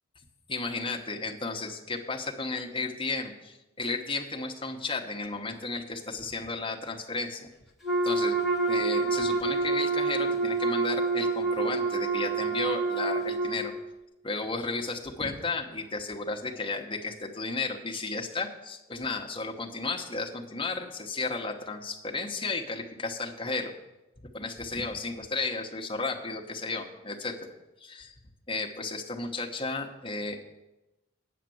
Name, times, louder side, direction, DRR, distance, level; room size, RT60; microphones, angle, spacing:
voice 1, 0.5-7.5 8.0-8.4 8.7-13.7 14.2-23.7 24.3-27.5 27.8-28.1 28.5-30.4, left 3 dB, 25° left, 1 dB, 1.0 m, -33 dB
Wind instrument woodwind instrument, 7.8-13.6, right 3 dB, ahead, 1.2 m, -27 dB
9.3 x 6.6 x 7.7 m, 0.99 s
head